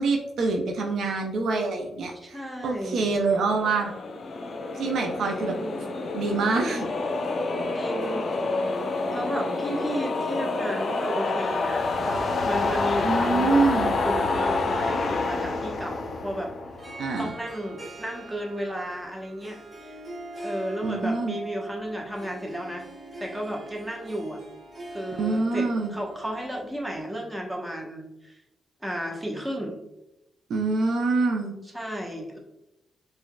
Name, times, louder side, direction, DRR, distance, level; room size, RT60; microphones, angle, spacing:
voice 1, 0.0-2.4 2.6-3.9 4.7-5.5 6.1-6.9 13.0-13.9 17.0-17.3 20.8-21.4 25.2-25.9 30.5-31.6, right 3 dB, 70° right, 2 dB, 0.4 m, -25 dB
voice 2, 2.2-3.1 5.2-5.8 7.7-8.3 9.1-16.5 17.2-20.0 20.4-22.8 23.2-24.4 24.9-28.4 28.8-29.8 31.6-32.4, equal, 15° right, 0 dB, 1.0 m, -33 dB
sound 1, 3.0-17.3, left 3 dB, 60° left, 0.4 m, -28 dB
Harp, 16.7-27.0, right 1 dB, 40° right, 1.1 m, -42 dB
4.4 x 2.3 x 2.2 m, 0.90 s
supercardioid pair, 50°, 0 cm